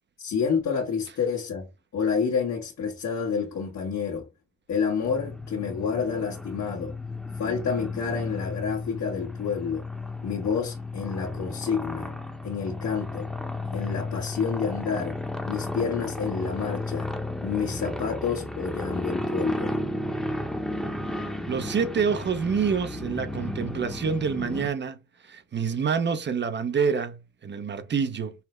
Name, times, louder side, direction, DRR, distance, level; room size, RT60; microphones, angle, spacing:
voice 1, 0.2-1.7 1.9-4.3 4.7-6.9 7.4-9.8 10.2-12.1 12.4-13.3 13.7-15.2 15.5-17.1 17.4-19.7, left 6 dB, 60° left, 1.4 m, -29 dB
sound 1, 5.0-24.7, left 2 dB, ahead, 0.9 m, -33 dB
voice 2, 21.5-25.0 25.3-28.3, right 6 dB, 35° right, 0.7 m, -27 dB
5.6 x 2.1 x 3.1 m
cardioid pair, 90°, 30 cm